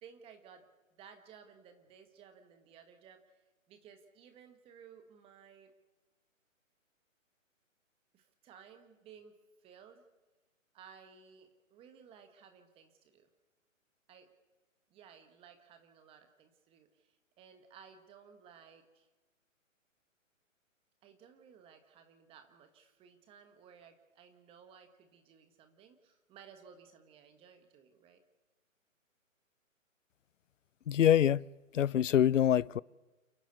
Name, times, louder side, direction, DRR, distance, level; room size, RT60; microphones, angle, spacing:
voice 1, 0.0-5.7 8.1-10.1 10.7-13.3 14.1-14.3 14.9-19.1 21.0-28.2, right 7 dB, 15° right, 1.5 m, -58 dB
voice 2, 30.9-31.4 31.7-32.8, left 10 dB, 65° left, 0.6 m, -25 dB
29.5 x 11.0 x 8.2 m
hypercardioid pair, 145°, 40 cm